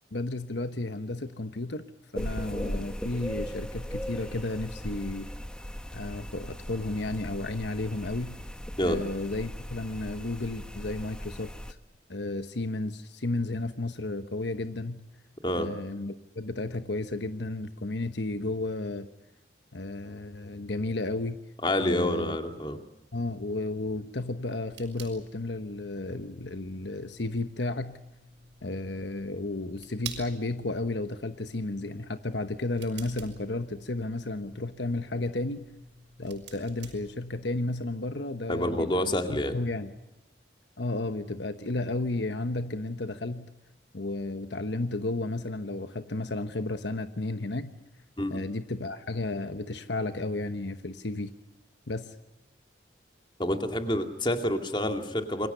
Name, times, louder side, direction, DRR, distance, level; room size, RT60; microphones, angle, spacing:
voice 1, 0.1-1.9 2.1-5.3 5.9-8.4 8.8-11.5 12.1-15.0 15.6-19.1 19.7-21.4 21.8-22.4 23.1-28.0 28.6-35.7 36.2-39.9 40.8-43.5 43.9-47.7 48.3-51.3 51.9-52.1, left 2 dB, 75° left, 9 dB, 1.1 m, -33 dB
sound 1, 2.1-11.7, equal, 5° left, 1.1 m, -38 dB
voice 2, 21.6-22.8 38.5-39.6 48.2-48.4 53.4-55.5, left 1 dB, 25° left, 5 dB, 2.3 m, -28 dB
sound 2, 24.1-37.7, right 6 dB, 80° right, 6.0 m, -50 dB
28.0 x 23.5 x 6.8 m, 0.99 s
head